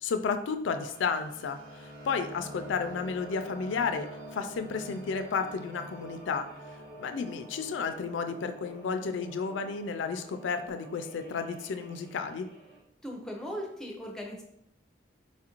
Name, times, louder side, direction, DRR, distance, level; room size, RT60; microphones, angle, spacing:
voice 1, 0.0-6.5 6.9-12.5, left 5 dB, 75° left, 8 dB, 0.3 m, -32 dB
sound 1, 0.8-12.8, right 1 dB, 50° right, 0.9 m, -47 dB
voice 2, 13.0-14.4, equal, 5° left, 0 dB, 0.5 m, -38 dB
4.3 x 2.5 x 2.9 m, 0.76 s
head